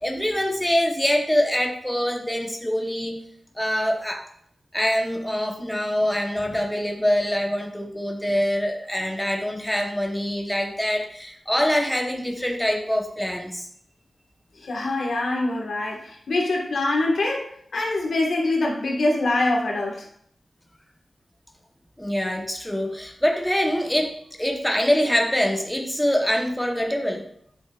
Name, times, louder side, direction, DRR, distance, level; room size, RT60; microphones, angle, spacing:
voice 1, 0.0-3.2 3.6-4.2 4.7-13.7 22.0-27.3, equal, 5° left, 2 dB, 1.0 m, -24 dB
voice 2, 14.5-20.1, left 2 dB, 80° left, -1 dB, 1.6 m, -24 dB
8.8 x 6.2 x 2.4 m, 0.66 s
wide cardioid pair, 75°, 0 cm